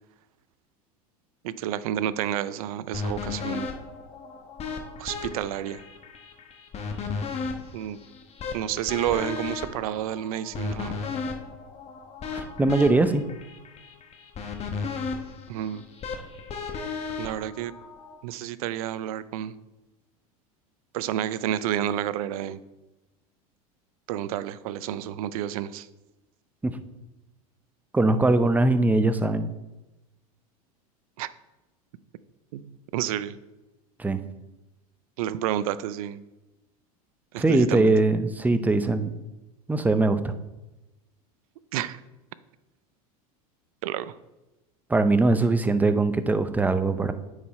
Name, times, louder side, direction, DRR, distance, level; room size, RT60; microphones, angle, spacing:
voice 1, 1.4-3.7 5.0-5.8 7.7-8.0 8.5-11.0 15.5-15.8 17.2-17.7 18.2-19.5 20.9-22.6 24.1-25.9 31.2-31.3 32.5-33.4 35.2-36.2 37.3-37.9 41.7-42.0 43.8-44.1, right 11 dB, 70° right, 16 dB, 0.5 m, -30 dB
sound 1, 2.9-18.2, left 5 dB, 35° left, 1.2 m, -35 dB
voice 2, 12.3-13.2 26.6-26.8 27.9-29.5 34.0-34.2 37.4-39.1 39.7-40.3 44.9-47.1, right 2 dB, 10° right, 11 dB, 0.6 m, -21 dB
9.1 x 4.9 x 4.2 m, 1.0 s
hypercardioid pair, 100°, 19 cm